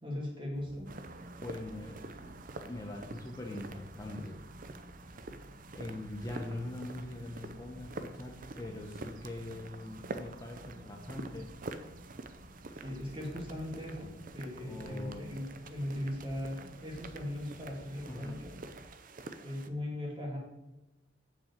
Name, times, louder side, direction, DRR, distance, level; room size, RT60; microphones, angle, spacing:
voice 1, 0.0-0.9 12.7-18.5 19.4-20.4, left 1 dB, 25° right, -2 dB, 2.2 m, -39 dB
sound 1, 0.5-18.9, equal, 60° right, 1.2 m, -53 dB
sound 2, 0.9-19.7, right 3 dB, 45° right, 0.5 m, -47 dB
voice 2, 1.4-4.4 5.7-11.5 14.6-15.4 18.1-18.4, left 1 dB, 15° left, 0 dB, 0.8 m, -42 dB
7.1 x 6.1 x 6.6 m, 1.0 s
head